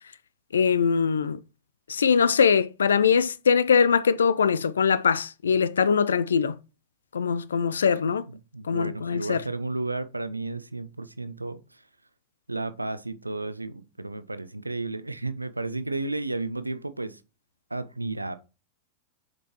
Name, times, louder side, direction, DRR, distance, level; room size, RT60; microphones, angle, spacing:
voice 1, 0.5-1.4 1.9-6.6 7.1-8.2 8.7-9.4, left 6 dB, 70° left, 0.5 m, -22 dB
voice 2, 8.3-11.6 12.5-17.2 17.7-18.4, right 2 dB, 85° right, 0.5 m, -33 dB
7.3 x 5.2 x 3.0 m
figure-of-eight pair, 90°, 0 cm